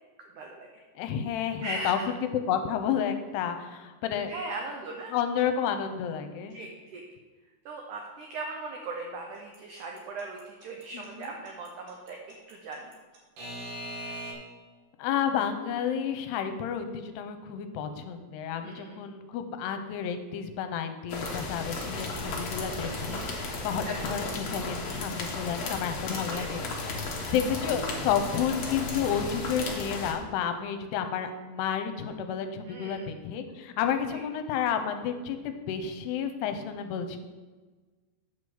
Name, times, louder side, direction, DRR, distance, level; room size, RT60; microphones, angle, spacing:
voice 1, 0.4-0.8 1.6-2.0 4.3-5.1 6.5-7.0 7.7-12.9 18.6-19.0 23.1-23.5 23.8-24.1 26.1-26.5 32.7-33.1 34.1-34.2, right 3 dB, 85° right, 1 dB, 1.7 m, -39 dB
voice 2, 1.0-2.2 2.5-4.3 5.1-6.6 10.9-11.3 15.0-26.6 27.1-37.2, left 8 dB, 85° left, 8 dB, 2.8 m, -31 dB
Alarm / Clock, 9.5-14.3, equal, 60° right, 3.1 m, -39 dB
sound 1, 21.1-30.1, left 3 dB, 60° left, 1.6 m, -34 dB
8.6 x 4.9 x 7.0 m, 1.3 s
omnidirectional pair, 4.8 m